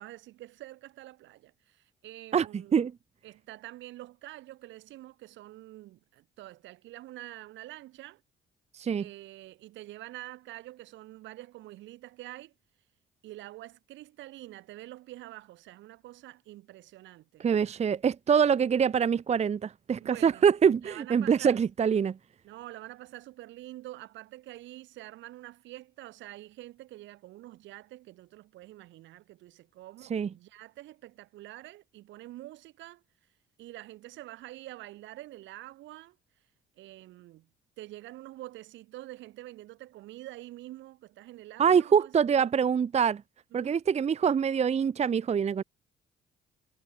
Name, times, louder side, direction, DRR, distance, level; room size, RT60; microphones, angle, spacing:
voice 1, 0.0-2.9 3.2-8.2 9.0-12.5 13.2-17.5 20.0-20.5 20.8-21.6 22.4-33.0 33.6-36.2 36.8-37.5 37.8-42.5 43.5-43.8, right 16 dB, 85° right, 4.3 m, -46 dB
voice 2, 2.3-2.9 8.7-9.1 17.4-22.2 30.1-30.3 41.6-43.2 43.5-45.6, right 7 dB, 35° right, 0.6 m, -25 dB
supercardioid pair, 75°, 19 cm